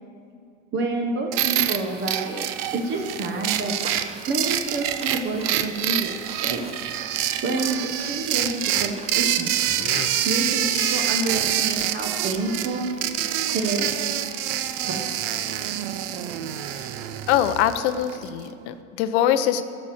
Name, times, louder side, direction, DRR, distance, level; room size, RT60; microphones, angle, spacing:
voice 1, 0.7-6.1 6.4-6.6 7.4-9.5 10.2-12.9 13.5-13.9 14.8-15.0, right 2 dB, 35° right, 2 dB, 1.0 m, -28 dB
sound 1, 1.3-18.3, right 11 dB, 60° right, 0.7 m, -26 dB
sound 2, 2.9-14.5, right 4 dB, 20° right, 0.7 m, -46 dB
sound 3, 4.6-12.6, left 8 dB, 30° left, 0.6 m, -41 dB
voice 2, 17.3-19.6, left 11 dB, 65° left, 11 dB, 0.6 m, -23 dB
11.5 x 5.3 x 7.5 m, 2.4 s
supercardioid pair, 125°, 35 cm